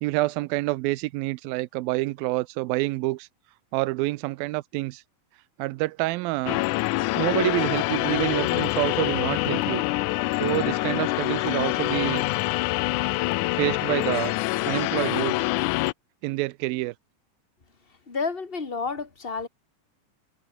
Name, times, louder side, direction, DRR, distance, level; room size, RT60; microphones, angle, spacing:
voice 1, 0.0-3.3 3.7-5.0 5.6-6.6 7.1-9.9 10.4-12.2 13.5-14.3 14.6-15.4 16.2-16.9, right 20 dB, 85° right, 2.5 m, -27 dB
sound 1, 6.5-15.9, left 20 dB, 90° left, 1.7 m, -25 dB
voice 2, 18.1-19.5, left 4 dB, 25° left, 1.4 m, -30 dB
omnidirectional pair, 4.2 m